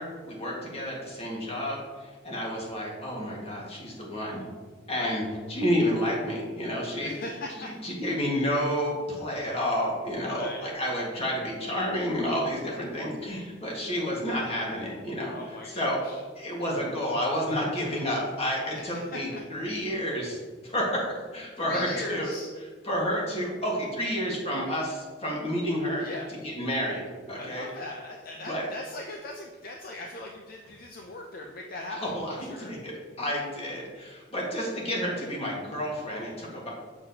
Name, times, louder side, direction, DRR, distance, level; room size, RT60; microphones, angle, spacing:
voice 1, 0.0-4.5 4.9-5.2 5.5-7.1 7.6-15.3 15.6-16.0 16.3-21.0 21.3-22.3 22.8-26.0 26.4-27.7 28.5-28.7 31.9-32.9 33.2-36.7, equal, 35° left, -3 dB, 1.6 m, -30 dB
voice 2, 7.0-7.7 10.3-10.6 15.3-16.2 18.7-19.4 21.6-22.5 26.0-26.3 27.4-32.0 32.4-32.7, left 2 dB, 50° left, 1 dB, 0.5 m, -39 dB
6.9 x 6.7 x 2.8 m, 1.4 s
head